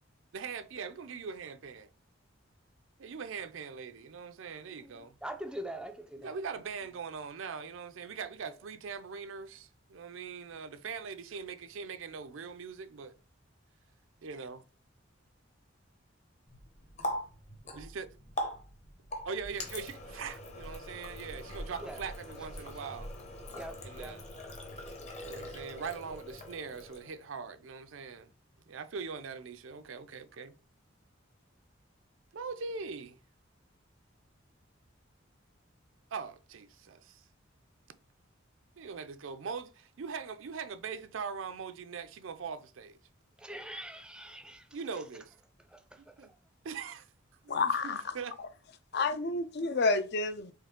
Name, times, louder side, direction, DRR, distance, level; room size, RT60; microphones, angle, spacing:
voice 1, 0.3-1.9 3.0-5.2 6.2-13.1 14.2-14.6 17.7-18.2 19.3-23.1 23.8-24.2 25.2-28.3 28.7-30.5 32.3-33.2 36.1-37.2 38.8-43.0 44.7-45.3 46.0-46.3 46.6-47.1 47.4-48.4, right 5 dB, 80° right, 0.5 m, -41 dB
voice 2, 4.8-6.4 21.8-22.0 23.4-24.2 43.4-44.7 45.7-46.3, right 1 dB, 5° right, 0.5 m, -43 dB
Water tap faucet, 16.5-27.3, equal, 35° left, 0.9 m, -42 dB
voice 3, 47.5-48.1 48.9-50.5, left 3 dB, 55° left, 0.5 m, -29 dB
4.5 x 3.1 x 3.6 m
head